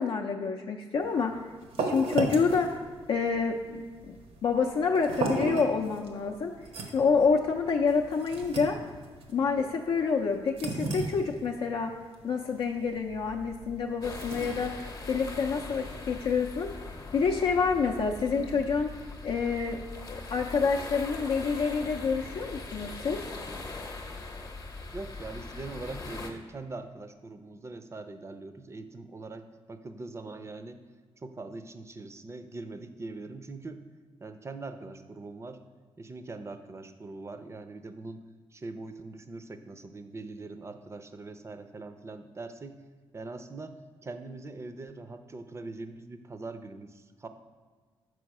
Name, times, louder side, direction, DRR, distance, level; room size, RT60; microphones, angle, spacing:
voice 1, 0.0-1.4 1.8-2.8 3.1-4.1 4.4-6.5 6.9-8.8 9.3-11.9 12.2-14.7 15.1-16.7 17.1-18.9 19.2-19.8 20.1-23.2, left 5 dB, 60° left, 1 dB, 0.5 m, -27 dB
sound 1, 1.0-16.0, right 3 dB, 80° right, 0.9 m, -37 dB
sound 2, 14.0-26.3, left 3 dB, 35° left, 0.8 m, -41 dB
voice 2, 24.9-30.8 31.2-33.8 34.2-35.6 36.0-38.2 38.5-42.8 43.1-43.7 44.0-47.3, right 3 dB, 25° right, 9 dB, 0.5 m, -42 dB
6.2 x 4.8 x 4.7 m, 1.5 s
cardioid pair, 105°, 10 cm